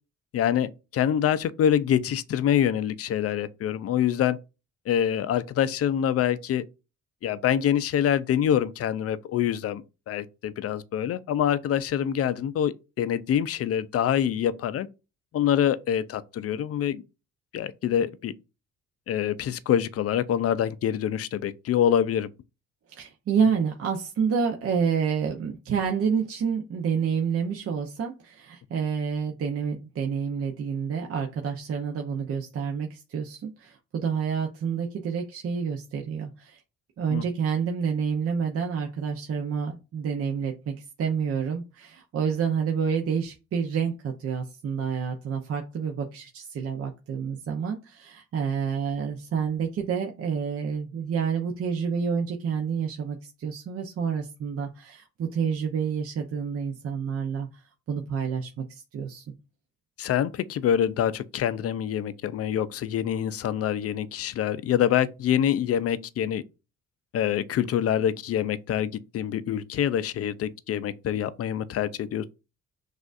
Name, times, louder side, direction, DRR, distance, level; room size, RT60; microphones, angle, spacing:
voice 1, 0.3-4.4 4.9-6.6 7.2-12.7 13.0-14.9 15.3-17.0 17.5-18.3 19.1-22.3 37.1-37.2 60.0-66.4 67.1-72.2, left 10 dB, 50° left, 0.5 m, -25 dB
voice 2, 22.9-36.6 37.0-57.6 57.9-59.2, right 6 dB, 50° right, 0.7 m, -28 dB
6.1 x 2.5 x 2.4 m
cardioid pair, 90°, 30 cm